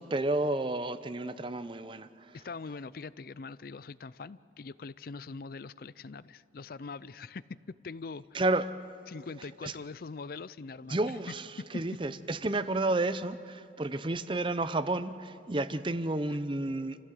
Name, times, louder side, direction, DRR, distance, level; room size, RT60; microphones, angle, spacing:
voice 1, 0.0-2.3 8.3-8.7 9.6-9.7 10.9-11.5 11.7-17.0, right 2 dB, 25° right, 13 dB, 0.6 m, -31 dB
voice 2, 2.3-8.4 9.1-11.0 11.6-11.8, left 4 dB, 55° left, 18 dB, 0.4 m, -42 dB
27.5 x 16.0 x 7.7 m, 2.5 s
head